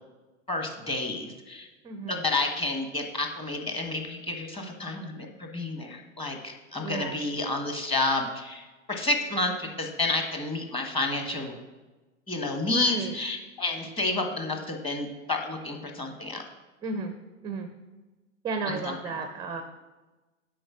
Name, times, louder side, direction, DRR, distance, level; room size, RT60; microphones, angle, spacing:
voice 1, 0.5-1.7 2.1-11.6 12.3-16.4 18.7-19.2, left 2 dB, 15° left, 3 dB, 1.2 m, -30 dB
voice 2, 1.8-2.2 6.8-7.2 12.7-13.1 16.8-17.1 17.4-17.7 18.4-19.6, right 4 dB, 10° right, 7 dB, 0.5 m, -33 dB
7.7 x 5.2 x 6.2 m, 1.2 s
figure-of-eight pair, 95°, 38 cm